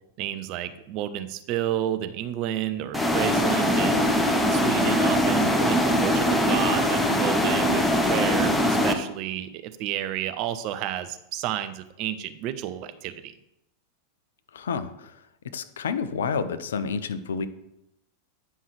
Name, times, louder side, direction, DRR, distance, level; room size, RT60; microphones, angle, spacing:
voice 1, 0.2-4.0 4.5-13.3, right 11 dB, 40° right, 9 dB, 0.6 m, -31 dB
sound 1, 2.9-8.9, left 1 dB, 5° left, 0.8 m, -22 dB
voice 2, 14.5-17.5, left 6 dB, 65° left, 12 dB, 0.5 m, -30 dB
9.3 x 5.4 x 3.2 m, 0.84 s
figure-of-eight pair, 90°, 0 cm